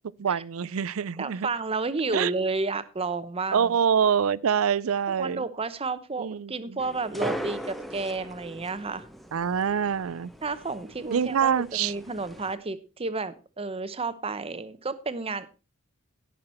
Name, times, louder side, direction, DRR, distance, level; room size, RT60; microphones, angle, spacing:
voice 1, 0.2-1.5 2.1-2.3 3.5-5.4 6.2-6.8 9.3-10.3 11.1-11.9, right 7 dB, 80° right, 0.5 m, -25 dB
voice 2, 1.2-3.7 5.2-9.1 10.4-15.5, right 3 dB, 30° right, 0.9 m, -31 dB
sound 1, 6.8-12.5, equal, ahead, 0.9 m, -39 dB
17.0 x 5.9 x 4.4 m
head